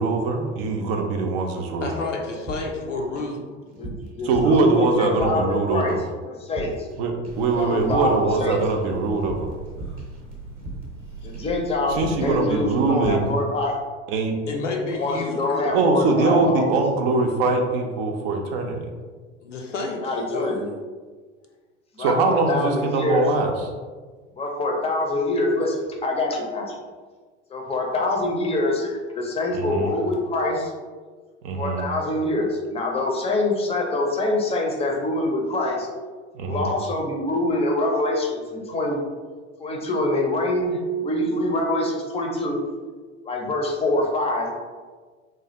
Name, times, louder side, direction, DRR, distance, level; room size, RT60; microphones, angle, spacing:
voice 1, 0.0-2.0 4.2-6.0 7.0-9.5 11.9-13.3 14.1-14.4 15.7-18.9 22.0-23.5 29.5-29.9 31.4-31.8 36.3-36.7, right 3 dB, 55° right, 3 dB, 0.6 m, -22 dB
voice 2, 1.8-3.6 14.5-15.6 19.4-20.0 20.3-20.5, left 3 dB, 85° left, 1 dB, 0.5 m, -29 dB
sound 1, 2.5-3.4 3.7-5.6 5.9-6.2 6.5-7.0 7.2-11.1 11.3-11.6 11.9-12.4 12.7-13.3, right 2 dB, 25° right, 0.8 m, -38 dB
voice 3, 3.8-5.9 6.3-6.9 7.5-8.6 11.2-13.7 14.9-16.6 20.0-20.7 21.9-23.2 24.4-26.8 27.5-30.7 31.6-35.9 36.5-39.0 39.6-42.6 43.2-44.5, left 2 dB, 15° left, 0 dB, 0.5 m, -25 dB
sound 2, 7.2-12.9, right 3 dB, 85° right, 0.7 m, -41 dB
3.1 x 2.3 x 2.8 m, 1.4 s
figure-of-eight pair, 75°, 36 cm